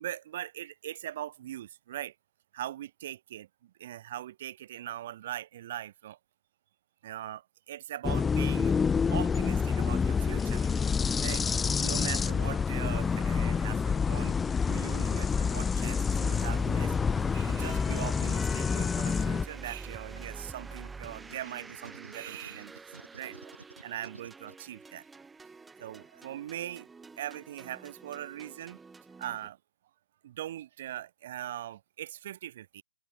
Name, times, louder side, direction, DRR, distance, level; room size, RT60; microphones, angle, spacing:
voice 1, 0.0-2.1 2.5-6.2 7.0-10.8 11.2-11.5 11.8-16.9 17.3-22.8 23.1-23.6 23.8-25.0 25.8-26.9 27.2-28.8 29.2-29.6 30.2-32.8, right 12 dB, 45° right, 1.6 m, -41 dB
sound 1, 8.0-19.5, left 5 dB, 10° left, 0.6 m, -28 dB
sound 2, 16.1-29.5, right 4 dB, 5° right, 1.7 m, -46 dB
sound 3, 17.8-19.5 19.9-24.5, right 3 dB, 80° right, 2.2 m, -51 dB
open air
figure-of-eight pair, 130°, 0 cm